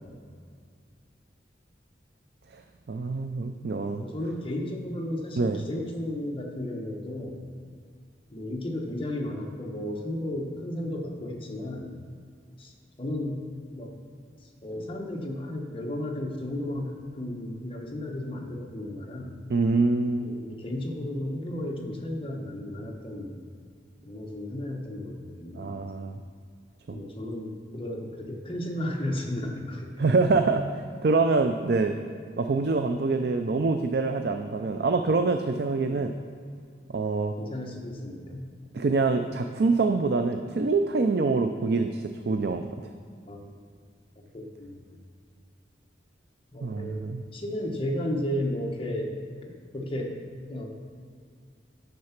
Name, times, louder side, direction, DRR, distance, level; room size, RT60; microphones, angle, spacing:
voice 1, 2.9-4.0 5.4-5.6 19.5-20.3 25.5-26.2 26.9-27.0 30.0-30.6 31.0-31.9 32.4-36.1 36.9-37.3 38.7-42.6 46.6-47.2, right 3 dB, 60° right, 6 dB, 0.4 m, -25 dB
voice 2, 4.0-7.4 8.3-12.0 12.6-12.7 13.0-13.4 13.7-13.9 14.4-19.4 20.2-23.3 24.0-26.1 26.9-30.3 37.4-38.5 43.3-43.6 44.3-44.8 46.5-49.2 49.7-50.1 50.5-50.7, left 1 dB, 30° left, 0 dB, 1.2 m, -34 dB
9.5 x 6.7 x 5.9 m, 2.2 s
head